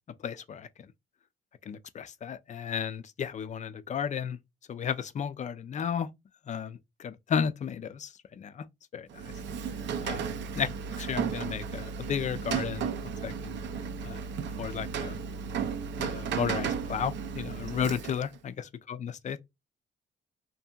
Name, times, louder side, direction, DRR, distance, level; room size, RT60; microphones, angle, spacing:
voice 1, 0.2-0.7 1.7-4.4 4.7-6.1 6.5-8.7 8.9-9.2 10.0-10.7 11.0-13.6 14.0-14.2 14.6-15.2 16.0-19.4, left 7 dB, 35° left, 0.4 m, -34 dB
Rain, 9.1-18.4, right 6 dB, 65° right, 0.4 m, -34 dB
2.7 x 2.6 x 2.3 m
cardioid pair, 90°, 20 cm